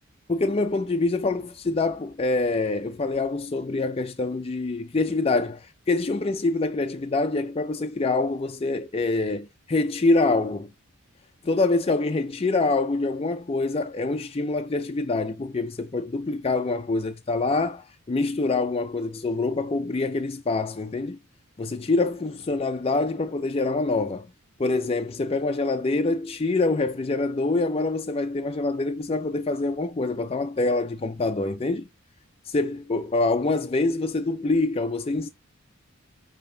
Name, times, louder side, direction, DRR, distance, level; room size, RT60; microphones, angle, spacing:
voice 1, 0.3-10.7 11.4-21.2 21.6-24.3 24.6-31.9 32.4-35.3, left 3 dB, 30° left, 0.5 m, -25 dB
8.5 x 2.9 x 5.6 m
head